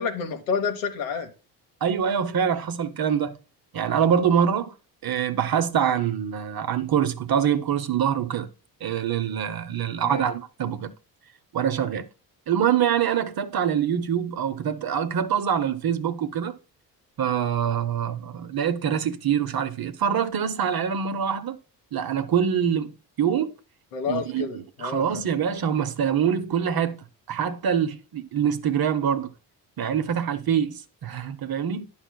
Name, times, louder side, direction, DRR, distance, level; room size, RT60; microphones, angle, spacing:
voice 1, 0.0-1.3 10.0-10.3 23.9-25.2, left 5 dB, 80° left, 1.3 m, -29 dB
voice 2, 1.8-3.4 3.7-4.7 5.0-8.5 8.8-10.9 11.5-12.1 12.5-16.5 17.2-21.6 21.9-22.9 23.2-23.5 24.1-24.5 24.8-27.0 27.3-29.3 29.8-31.9, right 8 dB, 45° right, 0.8 m, -24 dB
10.0 x 5.6 x 2.3 m
hypercardioid pair, 45°, 49 cm